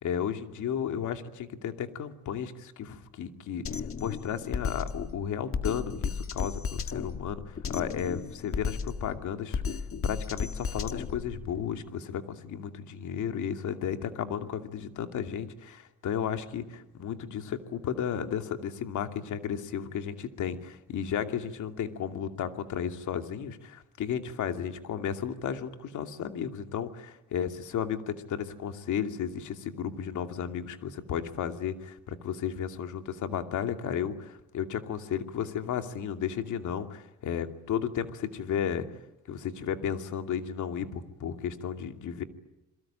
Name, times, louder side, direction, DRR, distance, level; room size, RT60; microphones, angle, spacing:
voice 1, 0.0-3.6 4.0-38.9 39.3-42.2, left 8 dB, 75° left, 7 dB, 2.7 m, -33 dB
Drum kit, 3.6-11.6, left 6 dB, 45° left, 1.9 m, -34 dB
28.0 x 22.5 x 8.9 m, 0.91 s
cardioid pair, 90°, 30 cm